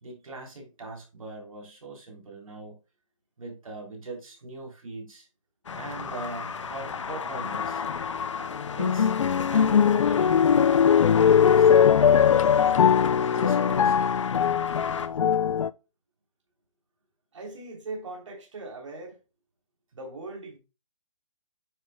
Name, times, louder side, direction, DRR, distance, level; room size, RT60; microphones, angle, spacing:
voice 1, 0.0-2.8 3.4-5.3 5.7-7.9 8.8-9.1 9.5-10.7 11.5-12.8 13.3-14.1, right 2 dB, 90° right, 3.5 m, -40 dB
sound 1, 5.7-15.1, left 6 dB, 65° left, 1.1 m, -34 dB
sound 2, 7.6-8.0 8.5-15.7, left 8 dB, 80° left, 0.5 m, -20 dB
voice 2, 17.3-19.2 19.9-20.6, right 2 dB, 65° right, 3.1 m, -39 dB
8.9 x 7.0 x 2.2 m
hypercardioid pair, 175°, 17 cm